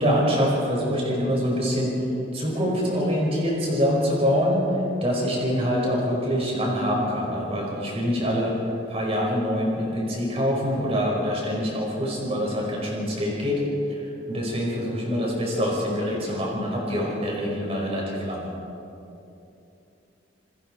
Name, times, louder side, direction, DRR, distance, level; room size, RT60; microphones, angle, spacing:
voice 1, 0.0-2.0 2.3-4.7 5.0-8.6 8.9-13.6 13.9-18.5, equal, 30° right, -3 dB, 5.5 m, -25 dB
28.0 x 20.5 x 4.7 m, 2.8 s
head